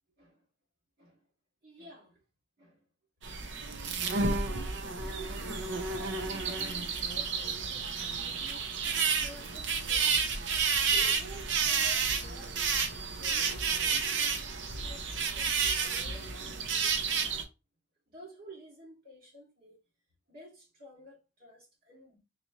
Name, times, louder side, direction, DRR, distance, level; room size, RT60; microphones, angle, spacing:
voice 1, 1.6-2.2 2.6-2.8 3.4-3.6 4.2-10.2 10.5-12.7 13.0-14.4 14.8-17.1 18.1-19.8 20.3-22.2, right 1 dB, 50° right, 1.8 m, -52 dB
sound 1, 3.2-17.4, right 5 dB, 85° right, 0.8 m, -31 dB
4.1 x 3.1 x 2.6 m
head